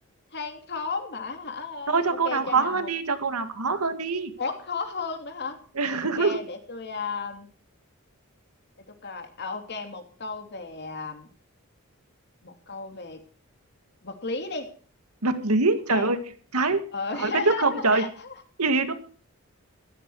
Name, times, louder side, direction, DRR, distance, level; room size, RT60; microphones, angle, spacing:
voice 1, 0.3-2.9 4.4-5.6 6.2-7.5 9.0-11.3 12.4-13.2 14.0-14.7 15.9-16.1 16.9-18.3, left 4 dB, 50° left, 6 dB, 2.8 m, -34 dB
voice 2, 1.9-4.3 5.8-6.4 15.2-16.2 16.5-16.8 17.1-18.0 18.6-18.9, right 3 dB, 90° right, 9 dB, 2.0 m, -24 dB
15.0 x 14.5 x 4.9 m, 0.43 s
head